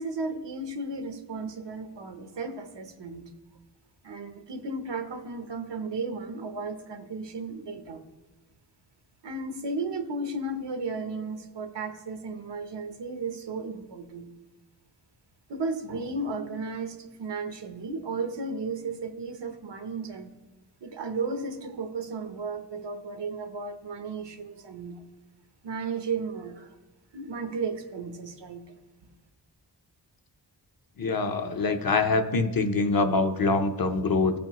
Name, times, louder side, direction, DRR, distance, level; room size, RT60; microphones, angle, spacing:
voice 1, 0.0-3.2 4.0-8.0 9.2-14.3 15.5-20.4 20.8-25.0 25.6-26.7 27.1-28.8, right 3 dB, 80° right, 7 dB, 0.9 m, -34 dB
voice 2, 31.0-34.3, left 3 dB, 55° left, 6 dB, 0.8 m, -24 dB
14.5 x 5.2 x 3.0 m, 1.2 s
wide cardioid pair, 80°, 42 cm